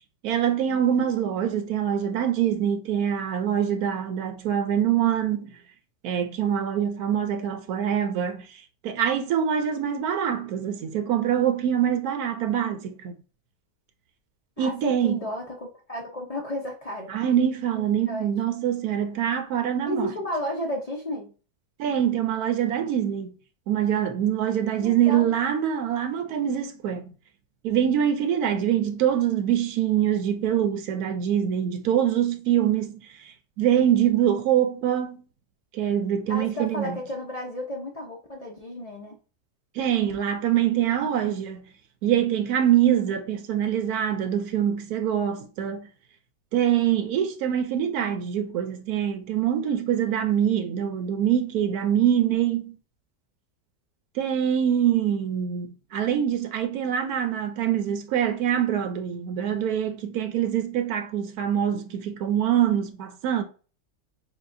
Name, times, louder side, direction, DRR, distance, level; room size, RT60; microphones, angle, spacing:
voice 1, 0.2-5.5 6.0-13.1 14.6-15.2 17.1-20.1 21.8-23.3 23.7-27.0 27.6-35.2 35.7-37.0 39.7-41.6 42.0-45.9 46.5-52.8 54.1-63.4, right 9 dB, 75° right, 1.0 m, -24 dB
voice 2, 14.6-17.1 18.1-18.3 19.8-21.3 24.8-25.3 36.3-39.2, left 1 dB, 70° left, 0.3 m, -33 dB
7.1 x 2.4 x 2.5 m
omnidirectional pair, 1.7 m